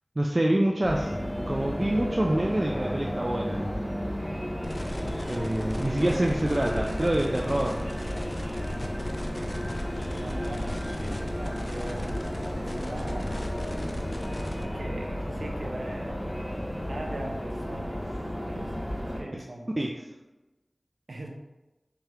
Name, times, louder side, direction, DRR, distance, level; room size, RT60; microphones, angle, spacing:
voice 1, 0.2-1.2 1.5-3.7 5.3-7.8 19.3-19.4 19.8-19.9, right 1 dB, 35° right, -1 dB, 0.3 m, -26 dB
sound 1, 0.8-19.2, equal, 5° left, 1.0 m, -33 dB
sound 2, 3.5-16.3, equal, 85° left, 0.8 m, -48 dB
sound 3, 4.6-14.6, left 1 dB, 45° left, 0.4 m, -37 dB
voice 2, 5.6-6.1 10.1-13.4 14.6-16.3 16.9-18.0 18.4-19.8 21.1-21.3, right 1 dB, 80° right, 0 dB, 0.6 m, -41 dB
3.5 x 2.9 x 3.3 m, 1.1 s
wide cardioid pair, 60°, 0 cm